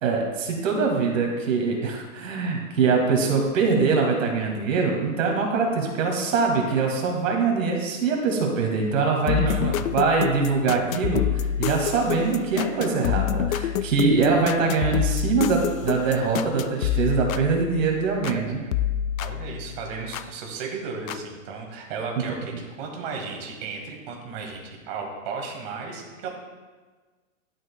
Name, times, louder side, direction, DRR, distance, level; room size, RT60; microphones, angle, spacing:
voice 1, 0.0-11.2 11.6-18.6, right 4 dB, 70° right, 1 dB, 1.8 m, -23 dB
sound 1, 9.3-18.4 18.7-20.3 21.1-21.2, left 11 dB, 80° left, 0.5 m, -28 dB
voice 2, 9.4-9.9 10.7-11.1 18.6-18.7 19.2-26.3, right 4 dB, 40° right, 1 dB, 1.7 m, -35 dB
11.5 x 6.2 x 2.2 m, 1.4 s
hypercardioid pair, 145°, 40 cm